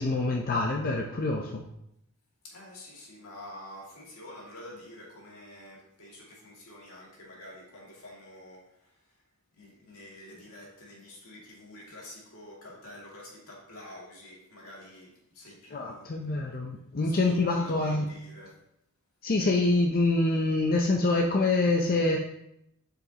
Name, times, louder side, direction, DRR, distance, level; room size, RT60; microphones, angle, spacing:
voice 1, 0.0-1.6 15.7-18.1 19.2-22.2, left 2 dB, 40° left, 0 dB, 0.6 m, -26 dB
voice 2, 2.5-8.6 9.6-15.1 15.4-16.2 17.2-17.4 17.8-18.5, left 1 dB, 80° left, -4 dB, 2.2 m, -48 dB
7.8 x 5.0 x 2.9 m, 0.79 s
head